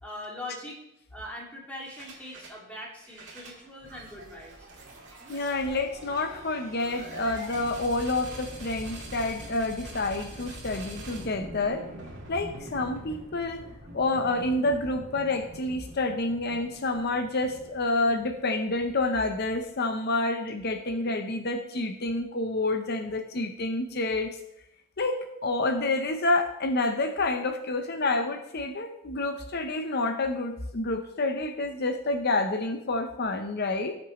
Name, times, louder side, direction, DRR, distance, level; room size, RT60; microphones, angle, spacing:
voice 1, 0.0-0.8 1.1-4.7, left 1 dB, 5° left, -4 dB, 2.3 m, -41 dB
sound 1, 1.8-2.6 2.9-19.9, right 1 dB, 55° right, 2.1 m, -44 dB
voice 2, 5.3-11.9 12.3-13.6 13.9-24.4 25.0-33.9, left 2 dB, 50° left, 6 dB, 0.7 m, -28 dB
17.5 x 6.1 x 3.1 m, 0.81 s
head